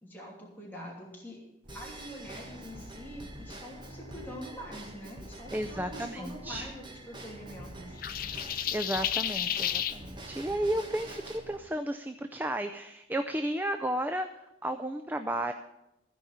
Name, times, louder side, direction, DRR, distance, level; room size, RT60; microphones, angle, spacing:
voice 1, 0.0-1.4 1.7-8.0, equal, 10° left, -4 dB, 2.8 m, -45 dB
sound 1, 1.6-11.6, right 1 dB, 75° right, 1.9 m, -50 dB
Drum kit / Drum / Bell, 1.7-11.4, right 1 dB, 30° right, 1.7 m, -47 dB
voice 2, 5.5-6.7 8.7-14.3 14.6-15.5, right 1 dB, 10° right, 7 dB, 0.5 m, -33 dB
sound 2, 8.0-10.0, left 10 dB, 55° left, 0.6 m, -31 dB
15.5 x 5.3 x 8.5 m, 0.91 s
head